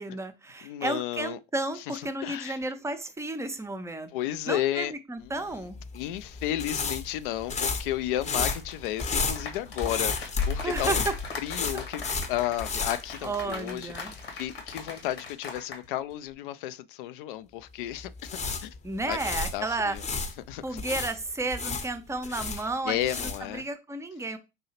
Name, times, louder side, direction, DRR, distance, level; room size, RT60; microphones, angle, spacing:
voice 1, 0.0-4.1 4.5-5.8 10.6-11.1 11.7-11.8 13.2-14.2 18.8-20.0 20.6-24.4, right 2 dB, 10° right, 0.6 m, -32 dB
voice 2, 0.6-1.4 1.8-2.6 4.1-4.9 5.9-11.0 11.4-12.0 12.3-18.7 19.1-19.2 19.5-20.0 20.5-20.8 22.4-23.6, left 13 dB, 60° left, 0.4 m, -33 dB
sound 1, 5.7-13.8 14.1-14.2 18.0-20.3 20.8-23.6, left 4 dB, 25° left, 0.8 m, -32 dB
sound 2, 8.5-15.8 16.1-16.3, left 4 dB, 80° left, 1.5 m, -40 dB
5.3 x 2.7 x 2.8 m
figure-of-eight pair, 75°, 30 cm